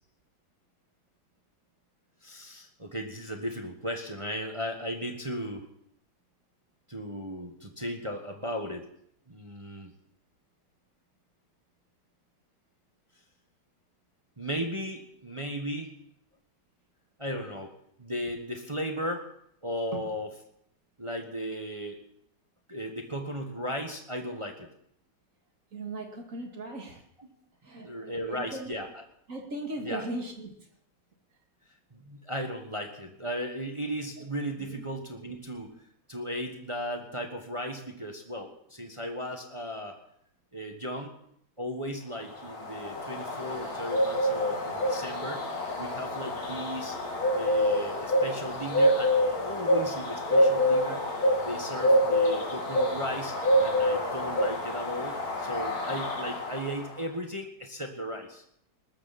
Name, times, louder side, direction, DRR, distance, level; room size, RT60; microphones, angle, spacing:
voice 1, 2.2-5.7 6.9-8.9 9.3-9.9 14.4-15.9 17.2-17.7 18.0-19.3 19.6-20.3 21.0-22.0 22.7-24.7 27.2-27.3 27.8-29.0 29.8-30.1 31.9-35.7 36.1-40.0 40.5-41.1 41.6-45.4 45.8-47.0 47.3-51.1 51.4-58.4, equal, 20° right, 4 dB, 1.1 m, -36 dB
voice 2, 25.7-27.0 27.6-28.8 29.3-30.5 34.6-34.8, right 2 dB, 40° right, 3 dB, 2.5 m, -38 dB
Bird, 42.3-57.0, equal, 45° left, 3.0 m, -27 dB
19.5 x 14.0 x 4.2 m, 0.70 s
omnidirectional pair, 2.3 m